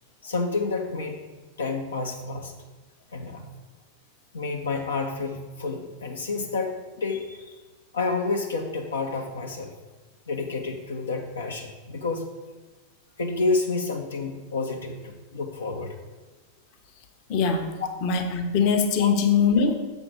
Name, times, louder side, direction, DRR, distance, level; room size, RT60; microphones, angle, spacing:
voice 1, 0.2-1.2 1.6-2.5 3.1-3.5 4.3-7.5 7.9-9.7 10.3-12.3 13.2-16.0 17.8-17.9 19.0-19.1, left 3 dB, 70° left, 2 dB, 0.8 m, -29 dB
voice 2, 17.3-17.7 18.0-19.7, left 6 dB, 40° left, 5 dB, 0.9 m, -22 dB
6.8 x 5.6 x 5.9 m, 1.2 s
figure-of-eight pair, 90°, 0 cm